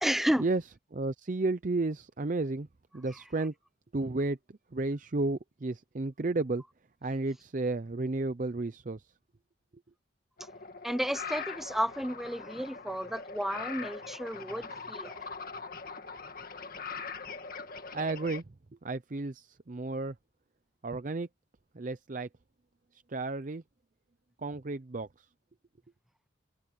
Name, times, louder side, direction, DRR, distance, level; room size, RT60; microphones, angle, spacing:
voice 1, 0.0-0.4 10.8-15.1, equal, ahead, 0.4 m, -32 dB
voice 2, 0.9-2.7 2.9-3.5 3.9-6.6 7.0-9.0 17.9-18.4 18.8-20.1 20.8-21.3 21.7-22.3 23.1-23.6 24.4-25.1, right 2 dB, 45° right, 0.6 m, -32 dB
sound 1, 10.4-18.4, left 5 dB, 50° left, 2.0 m, -42 dB
head